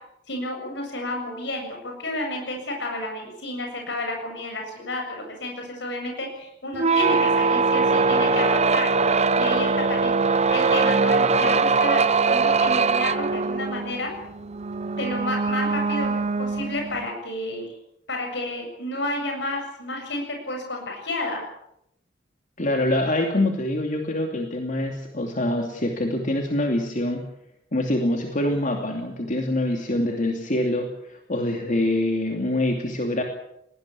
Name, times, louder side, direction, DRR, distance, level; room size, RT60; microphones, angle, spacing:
voice 1, 0.3-8.9 9.4-14.1 15.0-17.7 18.1-21.4, left 1 dB, 70° left, 2 dB, 7.5 m, -31 dB
sound 1, 6.7-17.1, right 4 dB, 35° right, 0.8 m, -22 dB
voice 2, 22.6-27.3 27.7-33.2, left 1 dB, 45° left, 3 dB, 2.7 m, -25 dB
21.5 x 18.5 x 8.5 m, 0.79 s
head